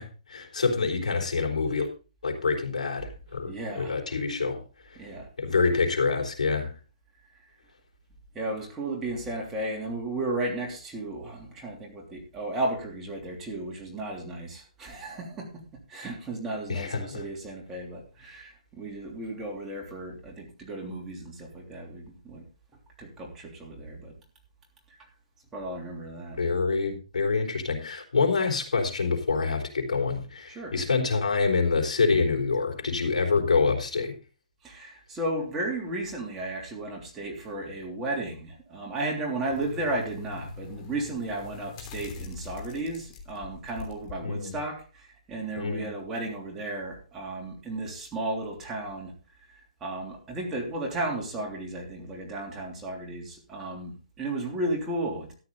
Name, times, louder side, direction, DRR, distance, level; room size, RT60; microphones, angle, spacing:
voice 1, 0.0-1.9 2.2-5.0 5.4-6.7 16.7-17.3 26.4-34.1 44.2-44.6 45.6-45.9, left 4 dB, 90° left, 1 dB, 3.9 m, -26 dB
voice 2, 3.4-4.0 5.0-5.3 8.3-15.6 15.9-22.4 23.0-24.1 25.5-26.4 30.5-30.7 34.6-49.1 49.5-55.3, right 2 dB, 10° right, -1 dB, 3.2 m, -34 dB
sound 1, 39.5-44.1 44.6-44.7, left 5 dB, 30° left, 3.2 m, -42 dB
13.5 x 9.5 x 4.0 m, 0.34 s
hypercardioid pair, 155°, 4 cm